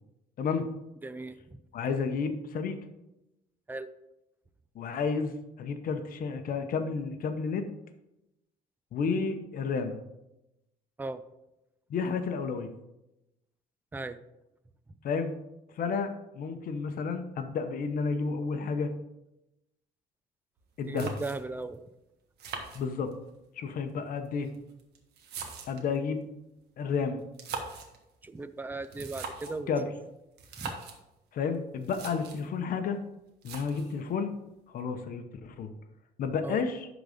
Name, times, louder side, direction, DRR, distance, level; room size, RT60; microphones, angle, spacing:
voice 1, 1.0-1.6 3.7-3.9 11.0-11.2 13.9-14.2 20.9-21.8 28.2-29.7 30.6-30.8 36.4-36.6, right 3 dB, 10° right, 12 dB, 0.5 m, -37 dB
voice 2, 1.7-2.8 4.7-7.7 8.9-10.0 11.9-12.7 15.0-15.3 15.7-18.9 20.8-21.1 22.7-23.1 23.5-24.5 25.7-26.2 26.8-27.2 29.7-29.9 31.3-33.0 33.4-34.3 34.7-35.7 36.2-36.9, left 5 dB, 55° left, 7 dB, 0.9 m, -31 dB
sound 1, 20.6-20.7 21.0-21.6 22.4-23.4 24.3-26.0 27.2-28.0 28.8-29.6 30.4-31.0 31.5-31.6 31.8-32.5 33.4-34.0, right 5 dB, 75° right, 1.5 m, -41 dB
11.0 x 4.0 x 5.1 m, 0.91 s
cardioid pair, 110°, 17 cm